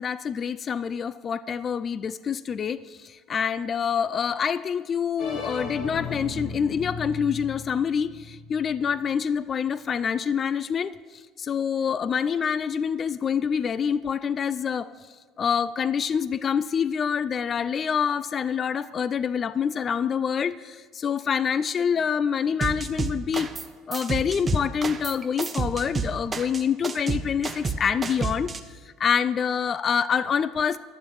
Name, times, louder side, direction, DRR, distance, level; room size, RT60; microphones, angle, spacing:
voice 1, 0.0-14.9 15.4-23.5 23.9-28.5 29.0-30.8, left 7 dB, 30° left, 17 dB, 0.3 m, -26 dB
sound 1, 5.2-9.0, left 3 dB, 55° left, 2.1 m, -36 dB
sound 2, 22.6-23.7 23.9-28.6, right 4 dB, 20° right, 0.8 m, -29 dB
11.5 x 7.4 x 7.2 m, 1.5 s
cardioid pair, 130°, 0 cm